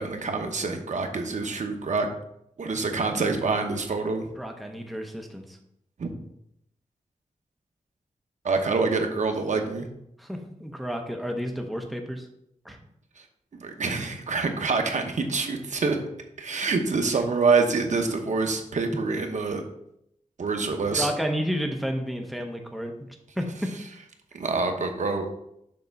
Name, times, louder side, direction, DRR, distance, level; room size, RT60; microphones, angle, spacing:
voice 1, 0.0-2.1 2.6-4.3 6.0-6.1 8.4-9.9 13.6-16.0 16.4-19.6 20.4-21.1 24.3-25.3, right 4 dB, 70° right, 5 dB, 0.9 m, -26 dB
voice 2, 4.4-5.4 10.2-12.3 12.6-12.8 21.0-23.5, equal, ahead, 3 dB, 0.8 m, -31 dB
6.7 x 3.4 x 5.3 m, 0.77 s
wide cardioid pair, 105°, 13 cm